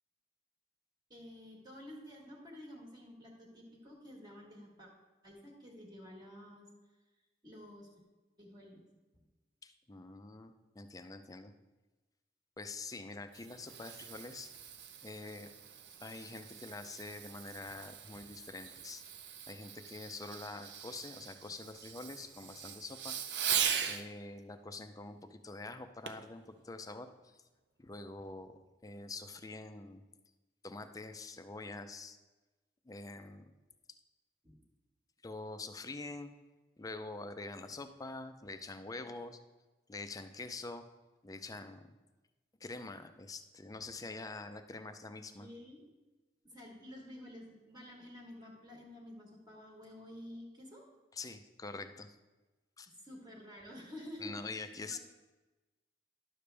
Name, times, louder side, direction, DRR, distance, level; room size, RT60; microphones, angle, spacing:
voice 1, 1.1-4.9 5.2-6.7 7.4-7.9 8.4-8.8 9.1-9.2 34.4-34.6 45.4-45.8 46.4-50.8 53.0-54.5 54.8-55.0, left 1 dB, 25° right, -2 dB, 1.5 m, -50 dB
voice 2, 9.6-11.5 12.6-14.5 15.0-15.5 16.0-19.0 19.5-23.6 23.8-27.1 27.8-30.0 30.6-32.2 32.9-33.5 35.2-36.3 36.8-39.4 39.9-40.9 41.2-41.8 42.6-45.5 51.1-52.1 52.8-52.9 54.2-55.0, left 3 dB, 20° left, 8 dB, 0.5 m, -45 dB
Fireworks, 13.1-24.1 26.1-26.3 26.9-27.0, right 8 dB, 70° right, 0.6 m, -40 dB
11.0 x 6.9 x 3.3 m, 1.2 s
head